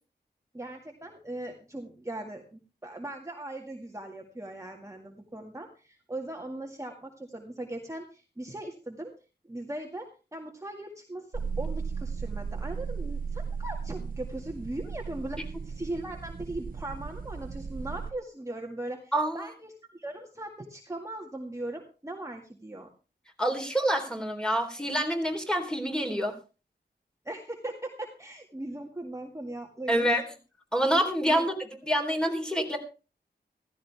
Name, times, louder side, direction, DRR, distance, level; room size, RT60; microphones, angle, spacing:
voice 1, 0.5-9.1 9.4-22.9 27.3-30.1 31.3-31.5, right 1 dB, 15° right, 1 dB, 2.0 m, -39 dB
sound 1, 11.3-18.1, right 5 dB, 50° right, 1.5 m, -36 dB
voice 2, 19.1-19.5 23.4-26.4 29.9-30.2 30.7-31.5 31.8-32.8, equal, 5° left, 2 dB, 3.7 m, -27 dB
15.5 x 15.0 x 3.5 m, 0.33 s
wide cardioid pair, 85°, 18 cm